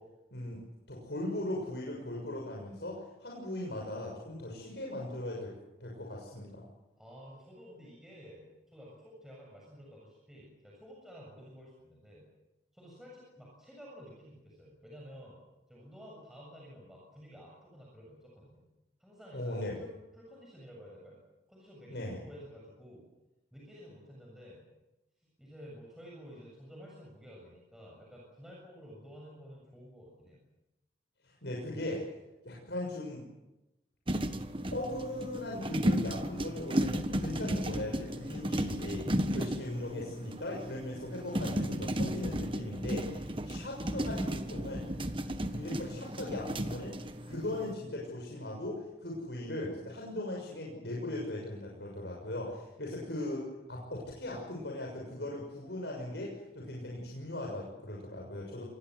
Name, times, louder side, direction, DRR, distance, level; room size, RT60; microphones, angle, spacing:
voice 1, 0.9-5.5 5.8-6.6 19.3-19.8 21.9-22.2 31.2-32.0 32.4-33.2 34.7-39.0 39.3-44.9 45.5-46.9 47.2-58.6, left 1 dB, 75° left, -1 dB, 6.5 m, -39 dB
voice 2, 7.0-12.3 12.7-15.4 15.7-18.6 19.0-21.2 21.5-23.1 23.5-24.6 25.4-30.4, equal, ahead, -4 dB, 7.3 m, -52 dB
sound 1, 34.1-47.7, equal, 30° right, 1.5 m, -34 dB
26.5 x 21.5 x 7.9 m, 0.97 s
head